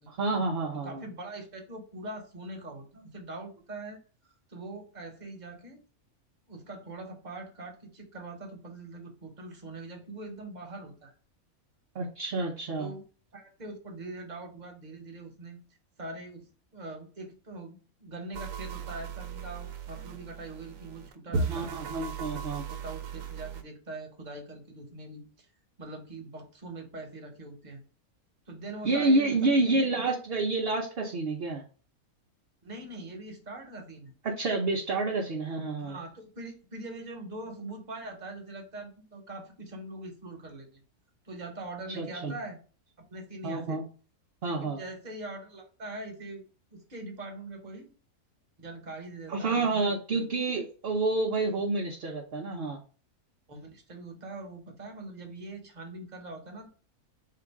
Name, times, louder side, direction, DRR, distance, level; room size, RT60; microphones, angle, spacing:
voice 1, 0.1-1.0 11.9-12.9 21.5-22.6 28.8-31.6 34.2-36.0 42.0-42.3 43.4-43.9 44.4-44.8 49.3-52.8, right 3 dB, 55° right, 1 dB, 0.8 m, -29 dB
voice 2, 0.7-5.8 6.5-11.1 12.8-13.0 13.3-15.6 16.0-21.7 22.2-25.5 25.8-27.8 28.5-30.0 32.6-34.1 35.8-40.8 41.2-42.6 43.0-43.8 44.4-46.4 46.7-47.9 48.6-50.3 53.5-56.7, right 2 dB, 35° right, 2 dB, 1.1 m, -43 dB
sound 1, 18.3-23.6, right 4 dB, 75° right, 1.0 m, -36 dB
3.8 x 2.5 x 4.7 m, 0.38 s
omnidirectional pair, 1.5 m